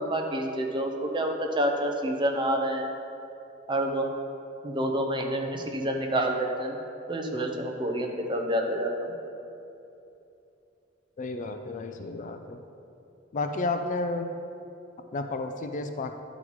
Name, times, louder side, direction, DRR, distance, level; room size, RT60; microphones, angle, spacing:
voice 1, 0.0-2.9 3.7-4.1 4.6-6.8 7.1-9.1, right 1 dB, 25° right, 2 dB, 0.7 m, -28 dB
voice 2, 11.2-12.6 13.3-14.3 15.1-16.2, left 3 dB, 40° left, 6 dB, 0.4 m, -31 dB
11.0 x 4.0 x 4.6 m, 2.7 s
head